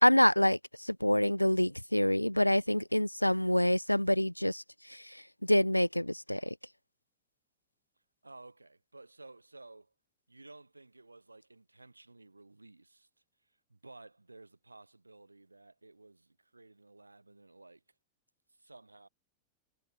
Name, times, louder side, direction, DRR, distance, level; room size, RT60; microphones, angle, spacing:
voice 1, 0.0-6.6, left 1 dB, 90° left, 0.3 m, -27 dB
voice 2, 8.2-9.9 10.3-13.1 13.4-17.9 18.5-19.1, right 2 dB, 80° right, 2.9 m, -55 dB
figure-of-eight pair, 90°, 0 cm